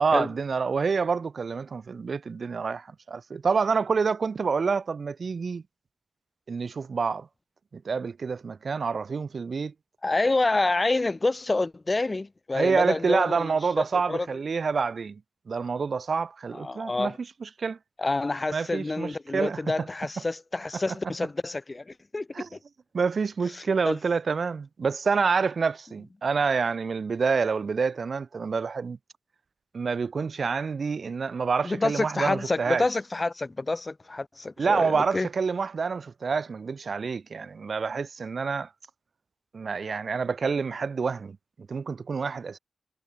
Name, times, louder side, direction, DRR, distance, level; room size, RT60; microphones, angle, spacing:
voice 1, 0.0-5.6 6.5-7.3 7.7-9.7 12.5-15.2 15.5-17.1 17.4-17.8 18.5-19.9 20.7-20.8 22.3-22.5 22.9-29.0 29.7-32.8 34.6-38.7 39.5-41.4 41.7-42.6, right 5 dB, 60° right, 2.6 m, -27 dB
voice 2, 10.0-13.5 13.8-14.3 16.5-17.1 18.0-22.5 23.9-24.0 31.6-35.3, left 2 dB, 30° left, 2.1 m, -28 dB
wide cardioid pair, 140°, 0 cm